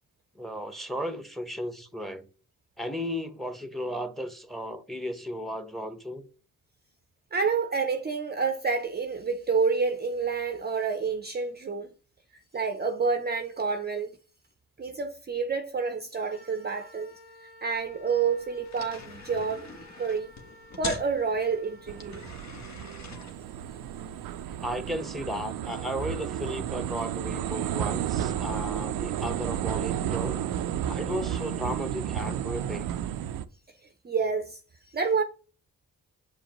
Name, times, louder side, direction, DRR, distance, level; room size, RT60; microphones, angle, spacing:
voice 1, 0.3-2.3 2.8-6.2 24.6-30.4 30.8-32.9, equal, ahead, 0.9 m, -35 dB
voice 2, 7.3-11.9 12.5-14.1 14.8-17.1 17.4-19.7 20.0-20.3 20.8-22.2 34.0-34.6 34.9-35.2, right 5 dB, 30° right, 0.6 m, -28 dB
Wind instrument woodwind instrument, 16.3-22.3, equal, 85° left, 1.1 m, -53 dB
sound 1, 17.7-32.8, left 4 dB, 50° left, 1.2 m, -47 dB
sound 2, 21.9-33.4, right 10 dB, 80° right, 0.5 m, -32 dB
7.2 x 5.0 x 3.0 m
supercardioid pair, 55°, 35 cm